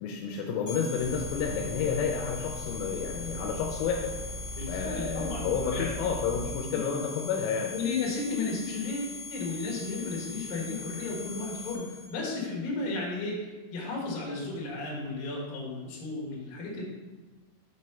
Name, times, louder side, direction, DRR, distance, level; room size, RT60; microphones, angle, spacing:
voice 1, 0.0-4.1 4.7-7.7, left 6 dB, 80° left, 1 dB, 3.1 m, -30 dB
sound 1, 0.7-12.1, left 4 dB, 40° left, 1.7 m, -41 dB
sound 2, 1.0-6.5, equal, 90° right, 2.3 m, -40 dB
voice 2, 4.6-5.9 6.7-6.8 7.7-16.8, left 3 dB, 60° left, -4 dB, 2.5 m, -34 dB
7.5 x 3.2 x 5.5 m, 1.2 s
omnidirectional pair, 5.8 m